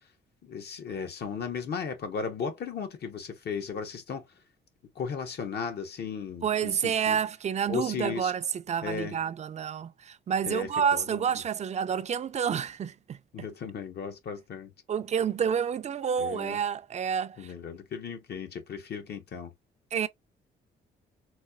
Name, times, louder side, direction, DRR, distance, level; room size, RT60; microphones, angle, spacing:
voice 1, 0.4-4.3 5.0-7.2 7.7-8.3 8.8-9.2 10.5-11.0 13.3-14.7 16.2-16.6 17.4-19.5, left 6 dB, 55° left, 0.8 m, -35 dB
voice 2, 6.4-13.2 14.9-17.5 19.9-20.1, right 7 dB, 35° right, 0.4 m, -29 dB
4.1 x 2.3 x 2.2 m
cardioid pair, 90°, 20 cm